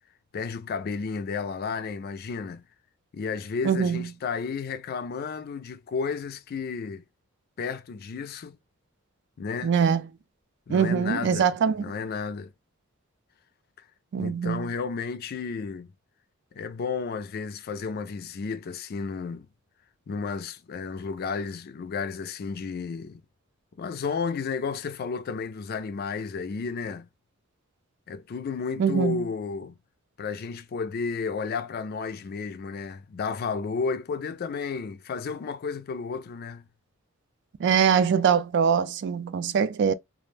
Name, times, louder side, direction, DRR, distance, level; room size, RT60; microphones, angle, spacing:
voice 1, 0.3-2.6 3.1-7.0 7.6-8.6 9.4-9.7 10.7-12.5 14.2-15.9 16.5-19.5 20.1-23.2 23.8-27.1 28.1-29.7 30.2-36.6, left 5 dB, 45° left, 0.3 m, -32 dB
voice 2, 3.6-4.0 9.6-10.0 10.7-11.8 14.1-14.7 28.8-29.2 37.6-39.9, right 7 dB, 55° right, 0.3 m, -23 dB
2.4 x 2.0 x 3.2 m
head